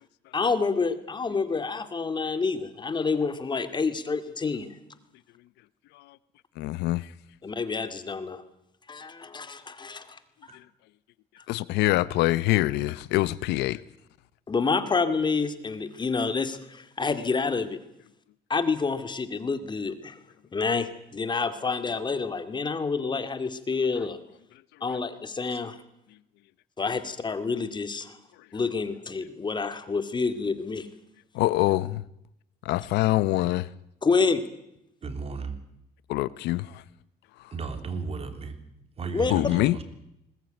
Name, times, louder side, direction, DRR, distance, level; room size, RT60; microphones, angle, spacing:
voice 1, 0.3-4.8 7.4-8.4 8.9-10.2 11.4-11.5 14.5-17.8 18.5-20.2 20.5-24.2 24.8-25.8 26.8-28.2 28.5-30.9 34.0-34.4 39.1-39.3, left 4 dB, 25° left, 2.3 m, -28 dB
voice 2, 6.6-7.0 11.5-13.8 31.3-32.0 32.6-33.7 36.1-36.7 39.3-39.8, left 17 dB, 85° left, 0.8 m, -24 dB
voice 3, 35.0-35.6 37.5-38.6 39.0-39.8, right 4 dB, 35° right, 3.4 m, -34 dB
21.0 x 19.0 x 9.2 m
cardioid pair, 110°, 17 cm